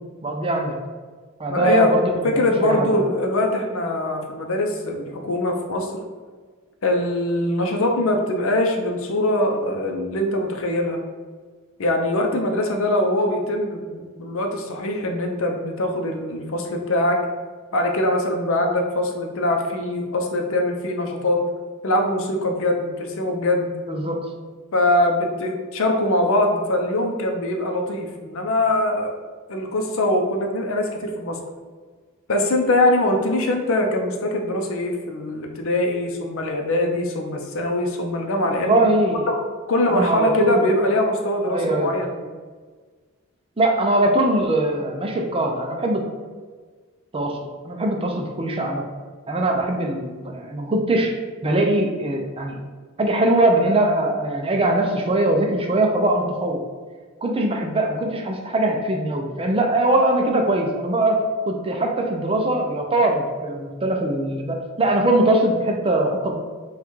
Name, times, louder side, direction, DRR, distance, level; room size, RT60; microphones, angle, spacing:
voice 1, 0.2-0.8 1.4-2.9 23.9-24.3 38.4-39.2 39.9-40.7 41.5-42.0 43.6-46.1 47.1-47.4 47.6-48.8 49.3-51.1 51.4-52.6 53.0-56.6 57.2-61.2 61.5-66.4, right 1 dB, 25° right, 2 dB, 0.5 m, -21 dB
voice 2, 1.5-2.0 2.2-5.9 6.8-11.0 11.8-17.2 17.7-21.4 21.8-23.7 24.7-29.1 29.5-31.4 32.3-38.8 39.3-39.4 39.7-42.3, left 1 dB, 65° left, 2 dB, 0.6 m, -22 dB
5.4 x 2.4 x 3.1 m, 1.5 s
head